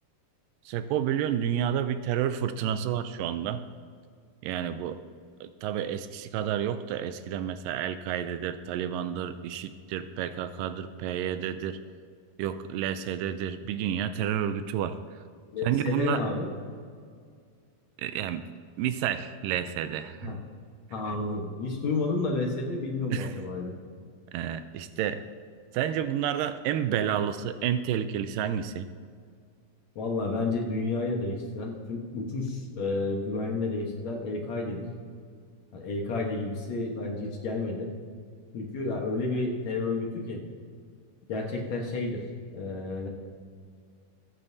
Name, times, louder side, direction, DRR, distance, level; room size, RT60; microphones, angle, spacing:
voice 1, 0.7-3.6 4.4-5.0 5.4-11.8 12.4-15.0 15.6-16.2 18.0-18.4 18.8-20.3 23.1-23.3 24.3-25.2 25.7-28.9, right 9 dB, 85° right, 11 dB, 2.0 m, -30 dB
voice 2, 15.5-16.5 20.2-20.4 20.9-23.7 30.0-34.9 35.7-37.9 38.5-40.4 41.3-42.2 42.5-43.1, left 3 dB, 60° left, 0 dB, 2.1 m, -31 dB
21.5 x 9.0 x 2.7 m, 2.1 s
omnidirectional pair, 4.3 m